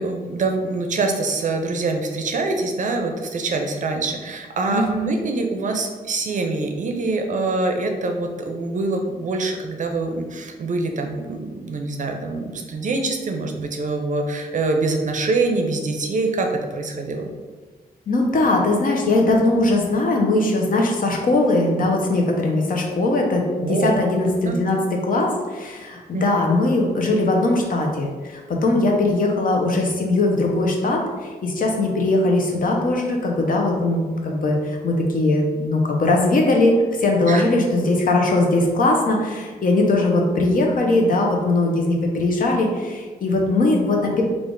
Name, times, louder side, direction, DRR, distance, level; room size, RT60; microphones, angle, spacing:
voice 1, 0.0-17.3 23.6-24.0 24.4-24.6 26.1-26.5 37.3-37.4, right 3 dB, 55° right, 4 dB, 0.5 m, -25 dB
voice 2, 4.7-5.2 18.1-24.8 25.0-31.0 31.4-44.2, left 2 dB, 60° left, 0 dB, 0.7 m, -20 dB
3.3 x 2.4 x 3.7 m, 1.4 s
wide cardioid pair, 110°, 16 cm